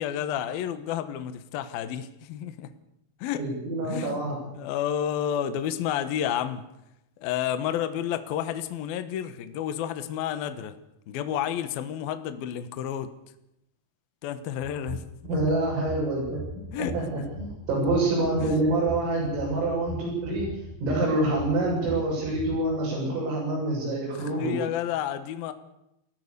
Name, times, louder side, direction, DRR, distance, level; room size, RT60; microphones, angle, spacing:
voice 1, 0.0-2.7 3.2-3.4 3.8-4.2 4.5-6.6 7.2-10.7 11.1-13.1 14.2-15.4 16.7-17.0 18.4-18.6 24.4-25.5, left 10 dB, 70° left, 10 dB, 2.5 m, -30 dB
voice 2, 3.4-4.4 15.3-16.4 16.8-20.5 20.8-24.6, right 2 dB, 80° right, -6 dB, 10.0 m, -26 dB
sound 1, 14.6-22.6, right 2 dB, 60° right, 3.9 m, -39 dB
28.5 x 17.0 x 6.8 m, 0.84 s
omnidirectional pair, 5.7 m